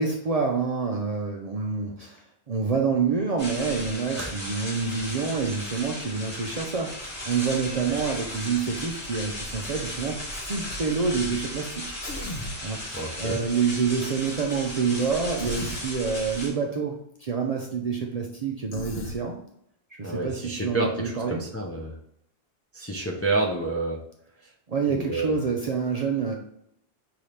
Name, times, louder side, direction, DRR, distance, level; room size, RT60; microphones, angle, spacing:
voice 1, 0.0-12.0 12.6-19.3 19.9-21.4 24.7-26.3, right 5 dB, 50° right, 0 dB, 0.5 m, -27 dB
sound 1, 3.4-16.5, left 1 dB, 35° left, 2.0 m, -36 dB
Human voice, 12.0-12.6 15.4-15.8 18.7-19.2, left 1 dB, 80° left, 1.1 m, -35 dB
voice 2, 12.9-13.4 20.0-21.9 22.7-24.0 24.9-25.3, right 2 dB, 20° left, -1 dB, 0.4 m, -29 dB
5.4 x 2.8 x 3.2 m, 0.73 s
omnidirectional pair, 1.1 m